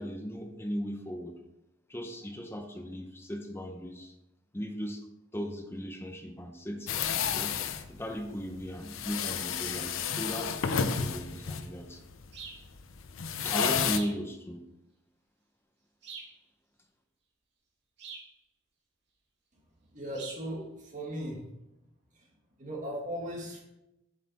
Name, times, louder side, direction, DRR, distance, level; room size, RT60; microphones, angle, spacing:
voice 1, 0.0-1.4 1.9-4.1 4.5-5.1 5.3-6.9 7.3-7.5 7.9-12.0 13.4-14.6, equal, 10° left, 4 dB, 0.7 m, -37 dB
sound 1, 6.9-14.0, left 7 dB, 85° left, 0.6 m, -31 dB
sound 2, 12.3-12.7 13.9-14.2 16.0-16.4 18.0-18.3 20.1-20.5, right 4 dB, 55° right, 2.2 m, -44 dB
voice 2, 19.9-21.4 22.1-22.3 22.6-23.6, equal, 40° right, -1 dB, 1.8 m, -38 dB
7.4 x 7.4 x 4.1 m, 0.92 s
head